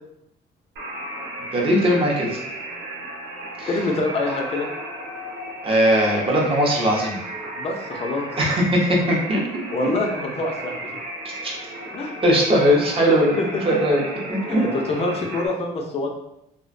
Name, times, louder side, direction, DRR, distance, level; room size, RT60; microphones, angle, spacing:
sound 1, 0.8-15.5, right 1 dB, 85° right, 0.6 m, -34 dB
voice 1, 1.5-2.4 3.6-3.7 5.6-7.2 8.4-9.4 11.4-11.5 12.2-13.3 13.7-14.0 14.3-14.6, equal, 35° right, -2 dB, 0.6 m, -19 dB
voice 2, 3.7-4.7 7.5-8.3 9.7-10.7 11.9-12.2 13.4-13.8 14.5-16.1, left 2 dB, 35° left, 2 dB, 0.5 m, -25 dB
2.4 x 2.1 x 2.5 m, 0.81 s
cardioid pair, 110°, 17 cm